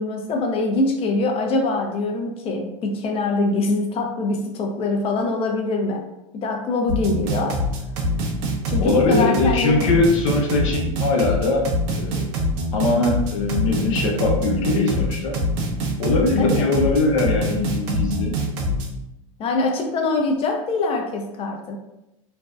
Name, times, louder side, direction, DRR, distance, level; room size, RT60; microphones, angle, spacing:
voice 1, 0.0-6.0 6.3-7.6 8.7-9.9 16.4-16.8 19.4-21.8, left 2 dB, 35° left, 2 dB, 0.5 m, -23 dB
sound 1, 6.9-18.9, equal, 60° right, 0.5 m, -24 dB
voice 2, 8.8-11.7 11.9-12.3 12.7-15.4 16.0-18.4, left 3 dB, 70° left, 0 dB, 0.7 m, -21 dB
2.5 x 2.1 x 2.4 m, 0.91 s
hypercardioid pair, 100°, 17 cm